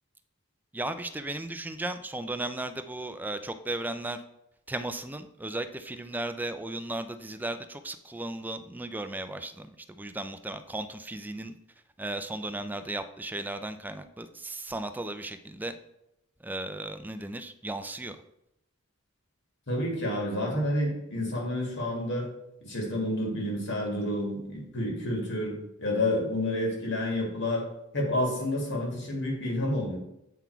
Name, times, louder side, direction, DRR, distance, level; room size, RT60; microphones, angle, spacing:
voice 1, 0.7-4.2 4.7-11.6 12.0-15.7 16.4-18.2, right 2 dB, 10° right, 9 dB, 0.4 m, -35 dB
voice 2, 19.7-22.3 22.6-27.6 27.9-30.0, left 1 dB, 60° left, -1 dB, 2.0 m, -29 dB
8.3 x 4.0 x 4.5 m, 0.83 s
head